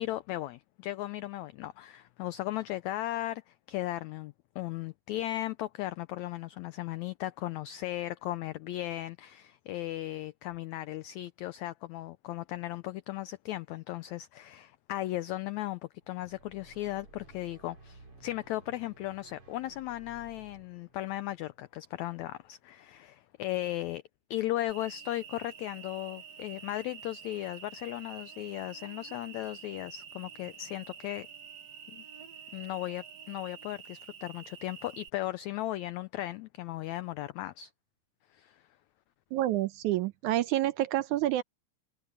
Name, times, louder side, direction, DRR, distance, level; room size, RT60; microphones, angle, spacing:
voice 1, 0.0-15.8 16.1-24.0 24.3-31.3 31.9-32.0 32.5-37.7 38.3-38.6, left 15 dB, 85° left, 1.6 m, -36 dB
sound 1, 16.0-22.3, right 3 dB, 40° right, 5.5 m, -57 dB
Cricket, 24.7-35.1, right 8 dB, 60° right, 2.2 m, -48 dB
voice 2, 39.3-41.4, right 14 dB, 75° right, 2.0 m, -28 dB
omnidirectional pair, 3.9 m